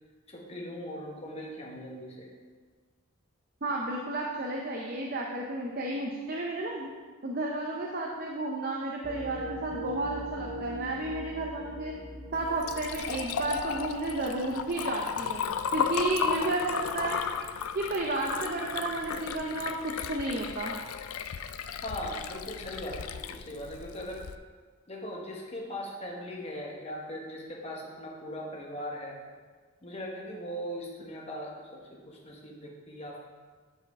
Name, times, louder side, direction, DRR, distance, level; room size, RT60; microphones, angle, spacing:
voice 1, 0.3-2.3 21.8-24.3 24.9-29.2 29.8-33.2, equal, 30° left, -1 dB, 1.1 m, -39 dB
voice 2, 3.6-6.9 7.2-11.9 12.3-15.4 15.7-17.2 17.7-20.8, right 2 dB, 45° right, -1 dB, 0.6 m, -32 dB
sound 1, 9.0-14.4, right 1 dB, 10° right, 1.1 m, -41 dB
Liquid, 12.3-24.3, left 7 dB, 80° left, 0.4 m, -35 dB
11.0 x 4.8 x 3.5 m, 1.5 s
head